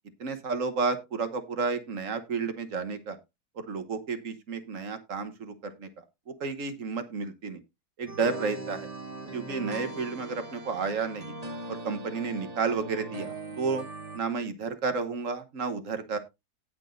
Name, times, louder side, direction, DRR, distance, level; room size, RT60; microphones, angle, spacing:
voice 1, 0.2-3.2 3.5-7.6 8.0-8.9 9.3-11.4 11.7-13.8 14.1-16.2, right 4 dB, 55° right, 8 dB, 1.4 m, -32 dB
sound 1, 8.1-14.2, right 2 dB, 25° right, 1.2 m, -40 dB
18.0 x 6.0 x 2.6 m, 0.23 s
omnidirectional pair, 1.6 m